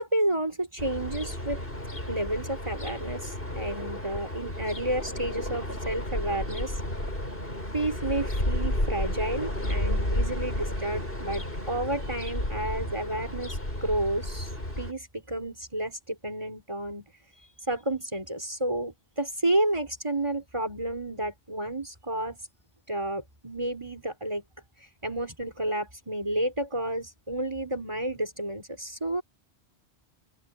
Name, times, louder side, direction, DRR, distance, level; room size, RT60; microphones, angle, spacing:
voice 1, 0.0-1.6 2.1-6.8 7.7-14.5 14.8-17.1 17.7-22.4 22.9-24.4 25.0-29.2, right 1 dB, 25° right, 4.6 m, -31 dB
sound 1, 0.8-14.9, left 1 dB, 55° left, 8.1 m, -32 dB
open air
omnidirectional pair, 1.1 m